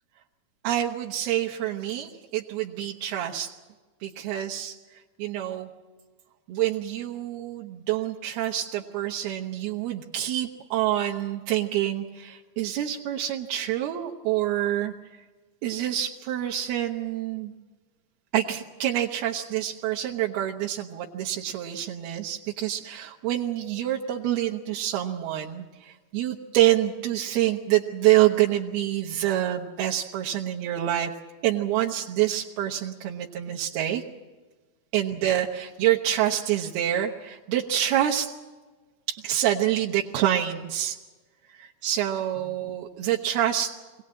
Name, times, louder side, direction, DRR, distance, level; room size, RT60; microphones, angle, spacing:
voice 1, 0.6-3.5 4.0-4.8 5.2-5.7 6.5-14.9 15.6-17.5 18.3-31.1 31.4-34.0 34.9-38.3 39.1-41.0 41.6-43.7, right 12 dB, 85° right, 0 dB, 2.9 m, -26 dB
23.5 x 18.0 x 8.7 m, 1.3 s
omnidirectional pair, 4.3 m